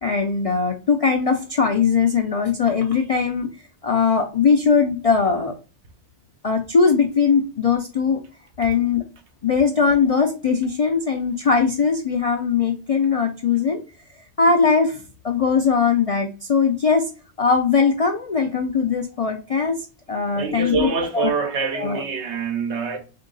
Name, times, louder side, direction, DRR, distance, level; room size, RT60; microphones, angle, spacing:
voice 1, 0.0-3.5 3.8-5.5 6.4-8.2 8.6-9.0 9.4-13.8 14.4-17.0 17.4-19.7 20.1-21.3 21.7-22.0, left 5 dB, 60° left, 0.3 m, -20 dB
voice 2, 20.3-23.0, right 5 dB, 75° right, 1.1 m, -25 dB
3.6 x 2.7 x 3.8 m
omnidirectional pair, 1.2 m